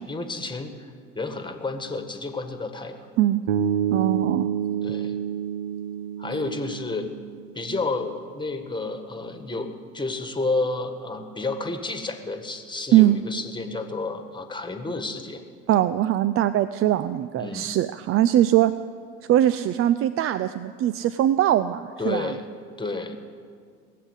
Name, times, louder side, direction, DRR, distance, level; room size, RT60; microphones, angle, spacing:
voice 1, 0.0-3.0 4.8-5.2 6.2-7.1 7.5-15.4 17.4-17.7 22.0-22.4 22.8-23.2, left 3 dB, 15° left, 6 dB, 1.7 m, -31 dB
Bass guitar, 3.5-7.6, right 9 dB, 65° right, 1.0 m, -28 dB
voice 2, 3.9-4.5 12.9-13.2 15.7-18.7 19.3-22.3, right 12 dB, 40° right, 14 dB, 0.5 m, -21 dB
19.0 x 7.6 x 8.2 m, 2.1 s
hypercardioid pair, 80°, 34 cm